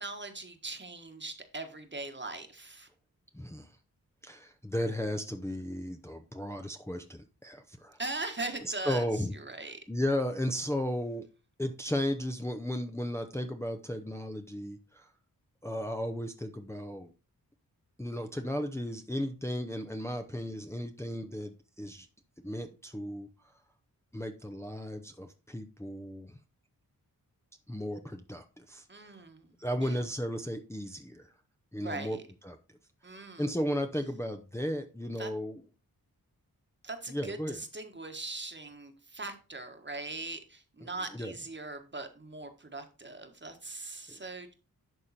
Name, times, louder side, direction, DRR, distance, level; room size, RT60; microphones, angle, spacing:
voice 1, 0.0-2.9 8.0-9.8 28.9-30.0 31.8-32.2 33.0-33.5 35.2-35.3 36.8-44.5, right 3 dB, 30° right, 1.5 m, -40 dB
voice 2, 3.3-3.7 4.2-8.0 8.6-9.3 9.9-11.3 11.6-15.1 15.6-17.1 18.0-22.1 22.4-23.3 24.1-26.4 27.7-28.9 29.6-31.3 31.7-32.2 32.4-32.6 33.4-35.6 37.1-37.6 41.1-41.3 44.1-44.2, equal, 5° left, 0.8 m, -35 dB
11.0 x 3.7 x 4.3 m
cardioid pair, 55°, 37 cm